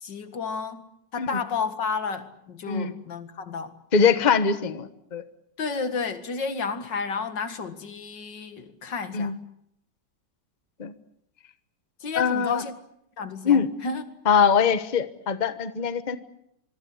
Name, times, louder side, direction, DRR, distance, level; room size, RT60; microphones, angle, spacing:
voice 1, 0.0-3.7 5.6-9.3 12.0-12.7 13.2-14.0, left 5 dB, 80° left, 2.5 m, -31 dB
voice 2, 3.9-5.2 9.1-9.4 10.8-10.9 12.2-12.6 13.4-13.7 14.2-16.2, left 6 dB, 30° left, 1.1 m, -22 dB
24.5 x 23.5 x 7.9 m
omnidirectional pair, 1.9 m